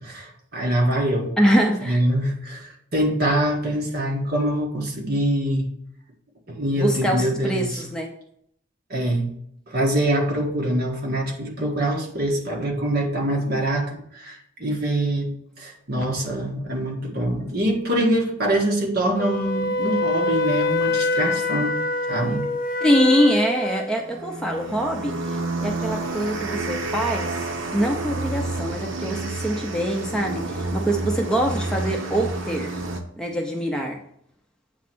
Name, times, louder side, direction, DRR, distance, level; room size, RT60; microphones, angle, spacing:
voice 1, 0.0-1.3 1.8-5.7 6.5-7.8 8.9-9.3 9.7-21.8 22.1-22.5, right 1 dB, 50° right, 0 dB, 1.6 m, -24 dB
voice 2, 1.4-2.0 6.8-8.1 22.8-27.3 27.7-32.7 33.2-34.0, equal, 5° left, 1 dB, 0.7 m, -24 dB
Wind instrument woodwind instrument, 19.2-23.9, left 2 dB, 45° left, 0.5 m, -24 dB
sound 1, 23.9-33.0, right 2 dB, 75° right, 0.9 m, -29 dB
8.4 x 3.2 x 6.0 m, 0.69 s
head